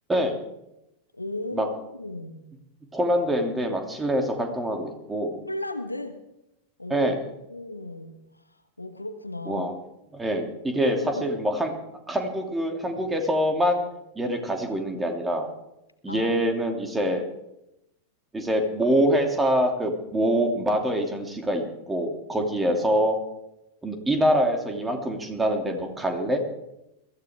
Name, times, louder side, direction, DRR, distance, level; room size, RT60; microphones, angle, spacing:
voice 1, 1.1-2.5 5.5-6.2 6.8-7.1 7.5-8.4 8.8-9.6 10.8-11.3 16.1-16.3, left 2 dB, 85° left, 8 dB, 1.4 m, -35 dB
voice 2, 2.9-5.4 6.9-7.2 9.5-9.8 10.1-11.7 12.1-13.8 14.1-15.5 16.0-17.2 18.3-23.2 23.8-26.4, equal, 10° right, 4 dB, 2.9 m, -25 dB
22.5 x 15.0 x 3.7 m, 0.87 s
figure-of-eight pair, 90°, 0 cm